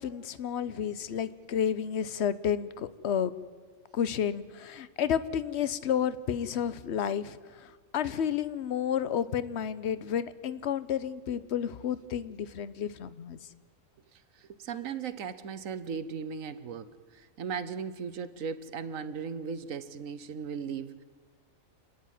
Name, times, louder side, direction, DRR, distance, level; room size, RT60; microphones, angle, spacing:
voice 1, 0.0-3.3 3.9-13.4, left 8 dB, 60° left, 1.0 m, -31 dB
voice 2, 14.1-21.0, right 6 dB, 80° right, 1.3 m, -37 dB
28.0 x 10.5 x 9.2 m
omnidirectional pair, 1.4 m